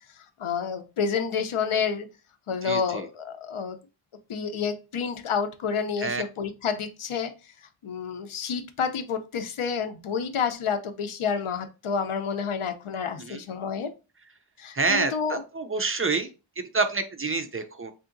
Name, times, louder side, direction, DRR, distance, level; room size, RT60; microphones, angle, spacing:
voice 1, 0.4-2.1 2.5-3.8 4.3-7.3 7.8-13.9 14.6-15.4, left 6 dB, 80° left, 9 dB, 0.6 m, -29 dB
voice 2, 2.6-3.1 6.0-6.2 13.2-13.4 14.7-16.3 16.6-17.9, right 4 dB, 30° right, 8 dB, 0.4 m, -28 dB
3.6 x 2.7 x 2.5 m, 0.30 s
wide cardioid pair, 70°, 49 cm